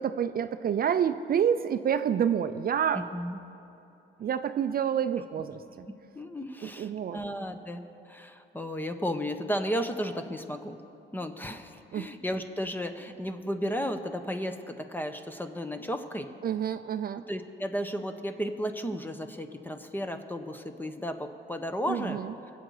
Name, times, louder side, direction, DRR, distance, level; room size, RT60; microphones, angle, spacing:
voice 1, 0.0-3.0 4.2-5.9 6.6-7.2 11.9-12.1 16.4-17.2 21.9-22.3, right 8 dB, 50° right, 10 dB, 0.5 m, -28 dB
voice 2, 2.9-3.4 6.1-10.8 11.1-16.3 17.3-22.2, equal, 10° left, 7 dB, 1.1 m, -34 dB
23.0 x 8.1 x 4.9 m, 2.7 s
cardioid pair, 90°, 20 cm